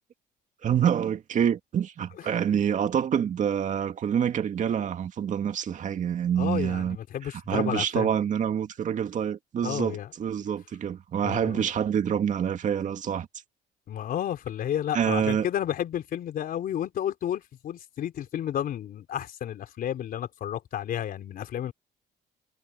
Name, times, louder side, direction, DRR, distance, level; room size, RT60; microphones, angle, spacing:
voice 1, 0.6-7.0 7.5-13.3 14.9-15.4, right 8 dB, 45° right, 2.2 m, -26 dB
voice 2, 6.4-8.1 9.6-10.1 11.2-11.6 13.9-21.7, left 10 dB, 60° left, 3.8 m, -31 dB
cardioid pair, 110°, 17 cm